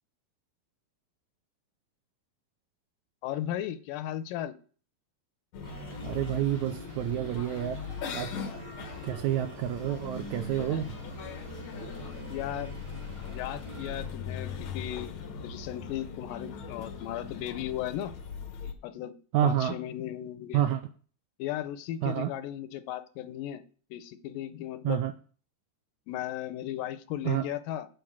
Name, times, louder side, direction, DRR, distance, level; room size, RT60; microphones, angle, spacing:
voice 1, 3.2-4.5 12.3-12.8 13.2-15.1 15.4-18.1 18.8-20.6 21.4-23.6 23.9-25.0 26.1-27.9, left 12 dB, 85° left, 12 dB, 2.4 m, -36 dB
sound 1, 5.5-18.7, left 6 dB, 70° left, 1.2 m, -40 dB
sound 2, 5.6-14.1, right 3 dB, 15° right, 1.2 m, -46 dB
voice 2, 6.0-7.8 8.1-8.5 9.0-10.9 19.3-19.8 20.5-20.8 22.0-22.3 24.8-25.1 27.3-27.5, right 11 dB, 80° right, 8 dB, 1.7 m, -29 dB
7.9 x 5.2 x 7.3 m, 0.42 s
omnidirectional pair, 3.8 m